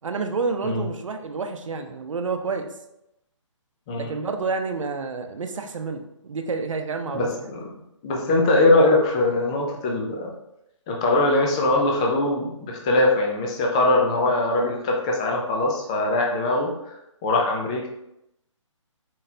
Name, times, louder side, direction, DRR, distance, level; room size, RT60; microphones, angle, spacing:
voice 1, 0.0-2.7 3.9-7.3, right 4 dB, 75° right, 5 dB, 0.7 m, -29 dB
voice 2, 7.1-7.7 8.0-10.3 10.9-17.9, left 2 dB, 10° left, -1 dB, 0.3 m, -22 dB
4.2 x 3.9 x 2.7 m, 0.83 s
hypercardioid pair, 155°, 16 cm